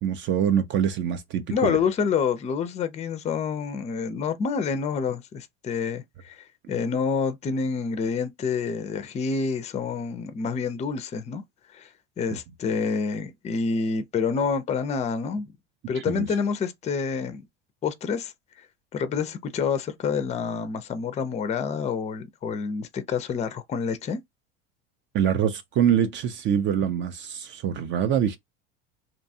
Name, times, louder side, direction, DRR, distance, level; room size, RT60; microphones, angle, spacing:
voice 1, 0.0-1.8 15.9-16.3 25.1-28.4, right 9 dB, 40° right, 0.4 m, -24 dB
voice 2, 1.5-11.4 11.7-11.9 12.2-15.5 15.9-17.5 17.8-18.3 18.9-24.2, left 5 dB, 25° left, 0.4 m, -28 dB
2.7 x 2.2 x 2.6 m
supercardioid pair, 105°, 29 cm